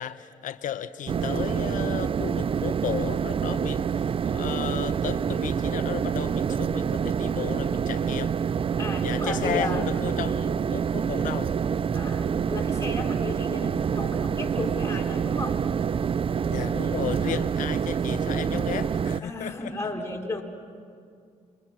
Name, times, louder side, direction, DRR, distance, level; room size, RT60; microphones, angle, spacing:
voice 1, 0.0-8.4 9.0-11.5 16.4-19.7, left 10 dB, 70° left, 12 dB, 1.0 m, -34 dB
sound 1, 1.1-19.2, right 7 dB, 40° right, 0.5 m, -27 dB
voice 2, 8.8-9.8 11.9-15.6 17.2-17.4 19.2-20.4, left 2 dB, 20° left, 1 dB, 4.1 m, -34 dB
28.0 x 23.5 x 6.2 m, 2.3 s
supercardioid pair, 65°, 14 cm